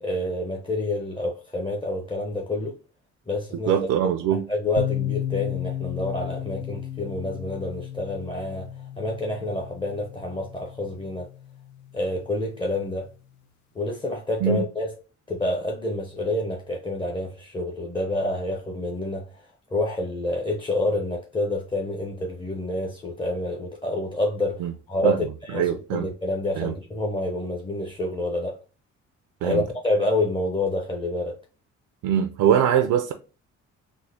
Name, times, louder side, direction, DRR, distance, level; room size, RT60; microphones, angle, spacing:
voice 1, 0.0-2.8 3.3-3.7 4.0-11.3 11.9-13.1 13.7-14.9 15.3-28.6 29.4-31.4, left 2 dB, 15° left, 0.6 m, -28 dB
voice 2, 3.7-4.4 14.4-14.6 24.6-24.7 25.0-25.2 25.5-26.1 26.6-26.7 29.4-29.6 32.0-33.1, right 9 dB, 85° right, 0.5 m, -22 dB
sound 1, 4.8-12.4, left 11 dB, 70° left, 0.5 m, -34 dB
3.7 x 2.1 x 3.2 m
cardioid pair, 90°, 30 cm